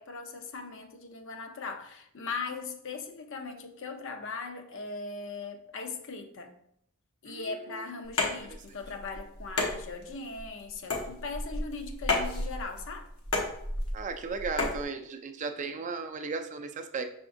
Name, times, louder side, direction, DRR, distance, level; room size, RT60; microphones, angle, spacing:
voice 1, 0.0-6.5 7.2-13.1, left 4 dB, 60° left, 6 dB, 0.5 m, -39 dB
voice 2, 7.3-7.9 13.9-17.1, right 4 dB, 35° right, 7 dB, 0.3 m, -36 dB
sound 1, 8.0-14.8, left 2 dB, 80° left, 1.0 m, -33 dB
5.7 x 3.5 x 2.6 m, 0.71 s
head